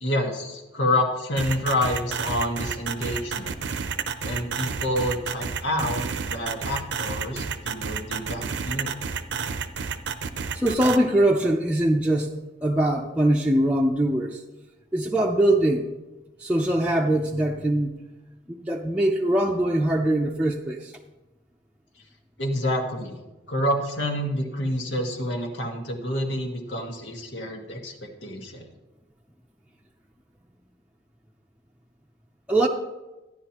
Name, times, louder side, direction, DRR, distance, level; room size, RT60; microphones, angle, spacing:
voice 1, 0.0-3.5 4.2-6.1 6.3-9.0 22.4-23.2 23.5-28.7, left 1 dB, 90° left, 2 dB, 1.7 m, -28 dB
sound 1, 1.4-11.0, right 6 dB, 85° right, 0.7 m, -30 dB
voice 2, 10.5-12.3 12.6-14.4 14.9-15.9 16.4-17.9 18.5-20.9 32.5-32.7, right 1 dB, 5° right, -1 dB, 0.6 m, -22 dB
14.5 x 10.0 x 3.0 m, 1.1 s
head